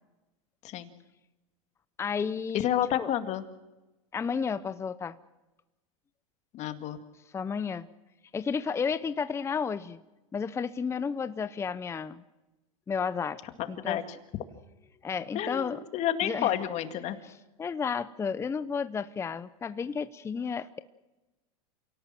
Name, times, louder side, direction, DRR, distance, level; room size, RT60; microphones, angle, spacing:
voice 1, 2.0-2.7 3.0-3.1 4.1-5.2 7.3-7.9 8.3-10.0 10.3-12.2 12.9-13.4 13.7-14.0 15.0-15.8 16.2-16.6 17.2-20.8, left 6 dB, 15° left, 13 dB, 0.7 m, -32 dB
voice 2, 2.5-3.4 6.5-7.0 13.8-14.0 15.3-17.2, left 11 dB, 40° left, 8 dB, 2.1 m, -30 dB
28.0 x 18.0 x 7.7 m, 1.0 s
hypercardioid pair, 120°, 18 cm